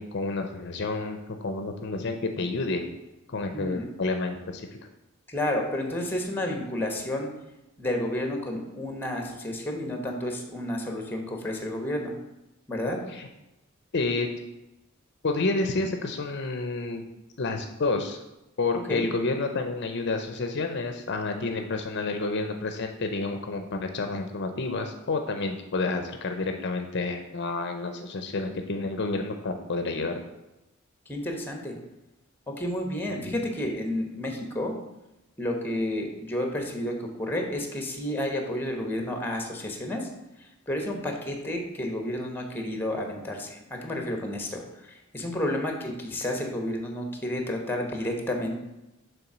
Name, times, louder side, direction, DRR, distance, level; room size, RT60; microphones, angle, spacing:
voice 1, 0.0-2.8 3.3-4.7 13.1-13.3 13.9-14.3 15.2-17.0 17.4-18.2 18.6-30.2 33.2-33.3, left 3 dB, 55° left, 6 dB, 0.6 m, -29 dB
voice 2, 3.5-3.9 5.3-7.3 7.8-12.1 12.7-13.0 18.9-19.1 31.1-31.8 32.5-34.8 35.4-40.1 40.4-48.6, left 1 dB, 10° left, 3 dB, 1.0 m, -31 dB
7.0 x 3.5 x 5.9 m, 0.96 s
head